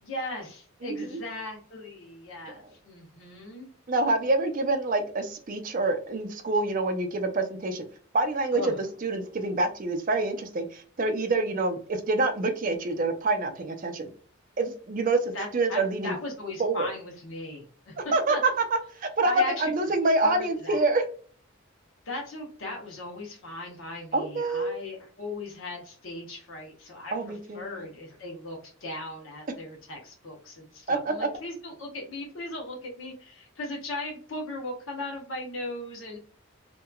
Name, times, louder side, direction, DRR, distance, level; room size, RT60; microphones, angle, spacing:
voice 1, 0.0-3.7 8.5-8.8 15.3-17.9 18.3-18.4 19.2-19.7 20.2-20.8 22.1-27.1 27.5-36.2, left 1 dB, 65° left, 0 dB, 0.7 m, -38 dB
voice 2, 0.8-1.2 3.9-7.8 8.1-14.1 14.6-16.2 16.6-16.9 18.0-21.0 24.1-24.8 27.1-27.6 30.9-31.3, right 2 dB, 40° right, 7 dB, 0.4 m, -26 dB
2.8 x 2.2 x 2.2 m, 0.44 s
head